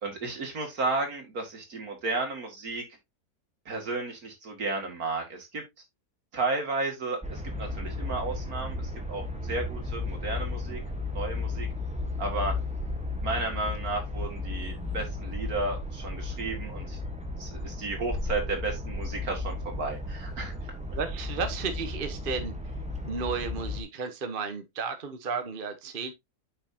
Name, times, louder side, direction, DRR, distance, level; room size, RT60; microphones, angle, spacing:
voice 1, 0.0-2.8 3.7-5.6 6.3-10.8 11.1-11.7 12.2-12.5 13.2-17.0 17.4-20.5, right 3 dB, 60° right, 2.7 m, -33 dB
sound 1, 7.2-23.8, left 2 dB, 5° right, 0.9 m, -34 dB
voice 2, 20.9-22.7 23.0-26.1, right 5 dB, 40° right, 1.0 m, -33 dB
8.9 x 5.7 x 2.8 m
omnidirectional pair, 1.7 m